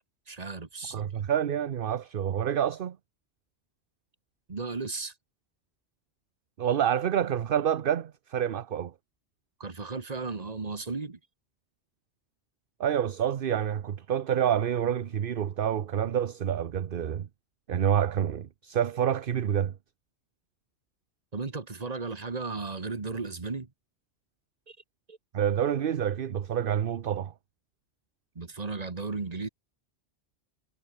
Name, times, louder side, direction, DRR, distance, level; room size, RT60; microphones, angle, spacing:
voice 1, 0.3-1.1 4.5-5.1 9.6-11.2 21.3-23.7 24.7-24.8 25.1-25.2 28.3-29.5, right 4 dB, 35° right, 1.6 m, -35 dB
voice 2, 0.9-3.0 6.6-8.9 12.8-17.3 17.7-19.7 25.3-27.3, right 9 dB, 55° right, 0.9 m, -28 dB
omnidirectional pair, 1.2 m